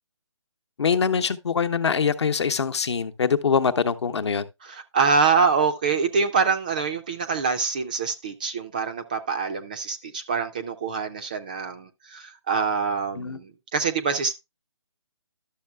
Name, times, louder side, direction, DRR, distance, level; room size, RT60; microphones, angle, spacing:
voice 1, 0.8-4.4 13.2-13.4, left 6 dB, 60° left, 0.9 m, -23 dB
voice 2, 4.6-14.4, right 5 dB, 15° right, 0.3 m, -25 dB
12.0 x 6.7 x 2.2 m
figure-of-eight pair, 155°, 16 cm